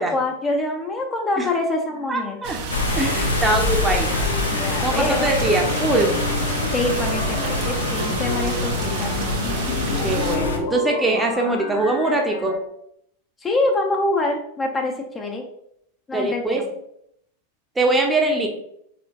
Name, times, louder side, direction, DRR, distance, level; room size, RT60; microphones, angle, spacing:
voice 1, 0.0-2.4 4.5-5.3 6.7-9.1 13.4-15.4 16.1-16.6, left 2 dB, 20° left, 2 dB, 0.6 m, -25 dB
sound 1, 1.9-12.6, left 3 dB, 45° left, 0.9 m, -33 dB
voice 2, 2.1-2.6 3.0-4.1 4.8-6.1 10.0-12.6 16.1-16.6 17.8-18.5, right 2 dB, 10° right, 2 dB, 0.7 m, -22 dB
sound 2, 2.4-10.4, right 4 dB, 50° right, 0.6 m, -31 dB
sound 3, 2.7-10.6, left 2 dB, 75° left, 0.7 m, -25 dB
4.2 x 3.7 x 2.8 m, 0.74 s
figure-of-eight pair, 90°, 0 cm